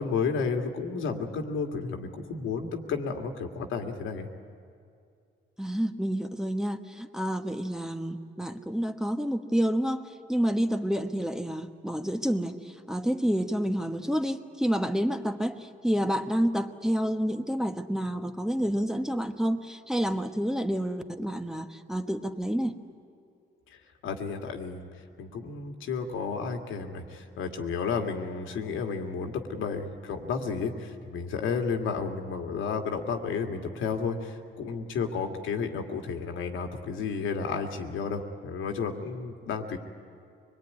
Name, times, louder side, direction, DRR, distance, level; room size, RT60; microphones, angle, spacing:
voice 1, 0.0-4.3 23.7-24.9 25.2-39.8, left 5 dB, 85° left, 4 dB, 2.2 m, -32 dB
voice 2, 5.6-22.7, equal, 5° right, 5 dB, 1.2 m, -29 dB
24.0 x 21.0 x 9.6 m, 2.4 s
cardioid pair, 90°, 20 cm